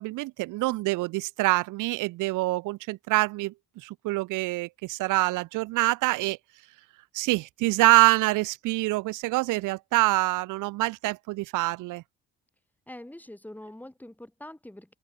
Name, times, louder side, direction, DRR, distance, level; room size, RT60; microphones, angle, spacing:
voice 1, 0.0-3.5 3.8-6.4 7.1-12.0, right 20 dB, 90° right, 0.5 m, -25 dB
voice 2, 12.9-15.0, left 1 dB, 5° left, 3.1 m, -44 dB
open air
cardioid pair, 90°, 30 cm